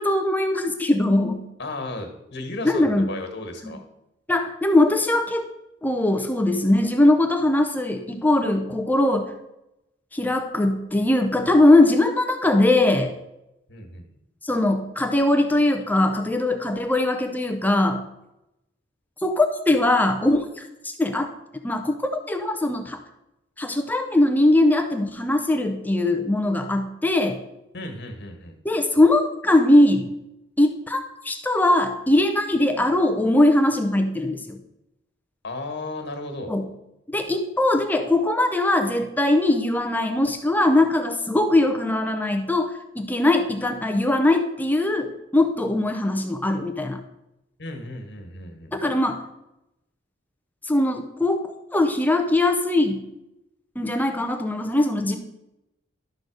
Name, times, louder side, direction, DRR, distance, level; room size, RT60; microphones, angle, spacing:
voice 1, 0.0-1.4 2.6-3.1 4.3-5.5 5.8-9.3 10.1-13.1 14.4-18.0 19.2-21.3 21.6-23.0 23.6-27.4 28.6-30.1 30.6-34.6 36.5-36.7 37.1-47.0 48.7-49.2 50.6-53.0 53.8-55.2, left 1 dB, 10° left, 6 dB, 0.6 m, -21 dB
voice 2, 1.6-3.8 13.7-14.1 27.7-28.6 35.4-36.5 47.6-48.7, left 2 dB, 65° left, 5 dB, 1.6 m, -34 dB
12.0 x 3.9 x 6.2 m, 0.90 s
head